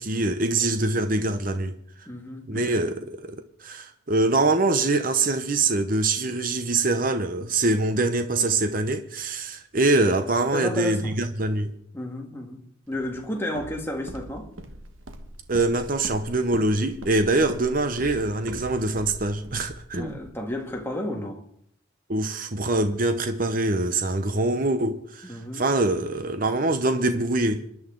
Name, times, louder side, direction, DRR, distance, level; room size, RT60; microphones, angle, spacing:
voice 1, 0.0-1.7 2.5-11.7 15.5-20.2 22.1-27.6, right 2 dB, 45° right, 0.9 m, -24 dB
voice 2, 2.1-2.9 10.5-11.2 11.9-12.6 12.9-14.5 20.0-21.4 25.2-25.7, left 1 dB, 10° left, 1.8 m, -32 dB
Walk footsteps, 12.9-20.8, right 1 dB, 75° right, 1.5 m, -42 dB
26.0 x 11.0 x 3.9 m
head